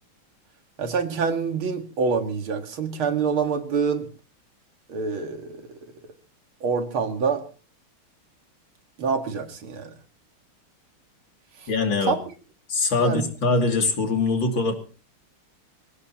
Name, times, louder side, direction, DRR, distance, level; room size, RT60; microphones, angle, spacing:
voice 1, 0.8-4.1 4.9-5.6 6.6-7.4 9.0-9.9 11.6-11.7 12.1-12.2 13.0-13.3, right 5 dB, 75° right, 2.7 m, -26 dB
voice 2, 11.7-12.1 12.7-14.7, left 3 dB, 65° left, 3.5 m, -22 dB
26.0 x 16.5 x 2.9 m
omnidirectional pair, 2.3 m